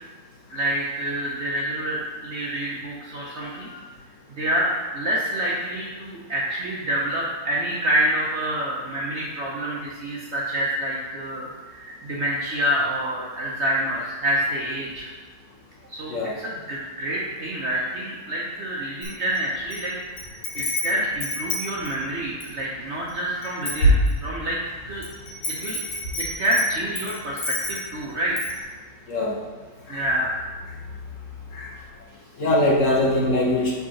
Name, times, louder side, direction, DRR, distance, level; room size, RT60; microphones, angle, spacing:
voice 1, 0.5-3.7 4.4-15.1 15.9-19.9 20.2-24.6 24.9-25.0 25.5-25.8 26.4-28.4 29.9-30.3, right 1 dB, 55° right, -4 dB, 0.8 m, -27 dB
Wind chime, 19.0-19.8 20.2-22.6 23.1-23.2 23.4-24.5 25.0-28.0 28.4-28.6, equal, 70° left, 1.9 m, -26 dB
voice 2, 32.4-33.7, left 1 dB, 50° left, -3 dB, 1.2 m, -22 dB
5.1 x 3.9 x 5.7 m, 1.3 s
omnidirectional pair, 1.8 m